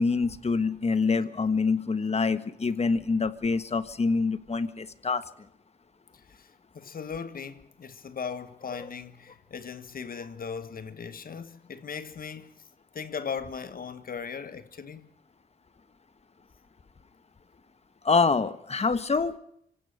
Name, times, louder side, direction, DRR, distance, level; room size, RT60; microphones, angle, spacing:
voice 1, 0.0-5.2 18.0-19.4, left 4 dB, 40° left, 1.4 m, -26 dB
voice 2, 6.1-12.7 12.9-15.1, left 6 dB, 60° left, 1.5 m, -38 dB
25.5 x 16.5 x 6.7 m
cardioid pair, 75°, 16 cm